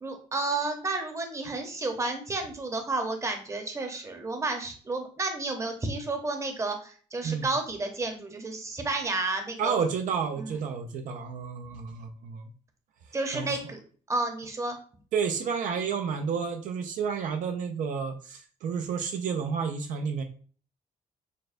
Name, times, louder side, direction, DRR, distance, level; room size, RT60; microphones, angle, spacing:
voice 1, 0.0-9.8 10.4-10.5 13.1-13.8 14.1-14.8, right 3 dB, 20° right, 5 dB, 0.8 m, -31 dB
voice 2, 9.6-12.5 13.3-13.5 15.1-20.2, right 6 dB, 70° right, 5 dB, 0.5 m, -30 dB
6.3 x 2.2 x 2.5 m, 0.42 s
cardioid pair, 125°, 14 cm